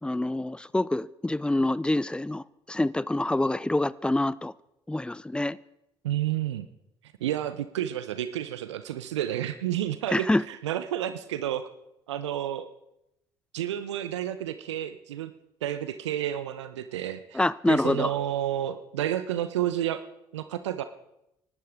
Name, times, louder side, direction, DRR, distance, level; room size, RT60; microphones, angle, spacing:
voice 1, 0.0-4.5 4.9-5.6 10.1-10.4 17.3-18.1, left 1 dB, 5° left, 0.5 m, -26 dB
voice 2, 6.0-6.7 7.2-11.7 12.1-12.7 13.5-15.3 15.6-20.0 20.3-20.8, right 11 dB, 85° right, 0.6 m, -30 dB
24.5 x 12.0 x 3.6 m
hypercardioid pair, 55°, 15 cm